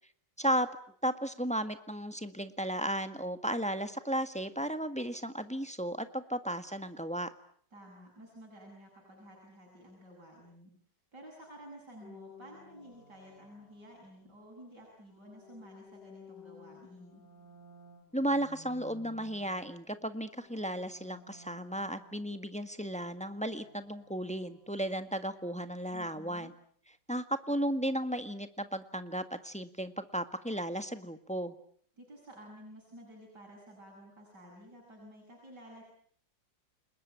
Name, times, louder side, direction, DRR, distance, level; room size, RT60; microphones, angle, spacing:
voice 1, 0.4-0.7 1.0-7.3 18.1-26.5 27.1-31.5, right 1 dB, 5° left, 9 dB, 1.4 m, -34 dB
voice 2, 7.7-10.7 11.1-17.2 25.9-26.5 32.0-35.8, equal, 65° right, -2 dB, 8.3 m, -52 dB
sound 1, 12.0-14.4 15.0-19.9 20.2-25.1, left 4 dB, 65° left, 4.5 m, -57 dB
30.0 x 21.0 x 9.0 m, 0.62 s
omnidirectional pair, 1.9 m